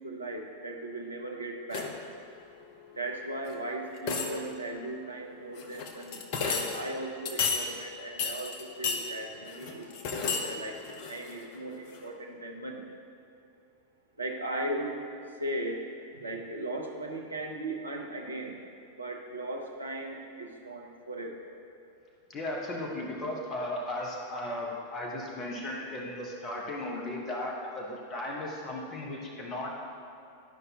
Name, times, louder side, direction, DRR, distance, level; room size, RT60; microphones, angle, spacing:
voice 1, 0.0-2.0 3.0-12.9 14.2-15.0 15.3-15.9 16.1-18.6 19.0-21.4 26.3-26.4, right 1 dB, 80° right, 2 dB, 0.8 m, -37 dB
sound 1, 1.7-2.1 3.5-3.6 4.0-4.6 5.6-6.8 7.2-7.7 8.2-9.0 9.5-10.5 10.8-11.5 11.9-12.0, left 5 dB, 45° left, 0.8 m, -32 dB
voice 2, 22.3-29.7, left 1 dB, 30° left, -2 dB, 1.2 m, -36 dB
11.5 x 5.3 x 2.9 m, 2.6 s
figure-of-eight pair, 90°, 0 cm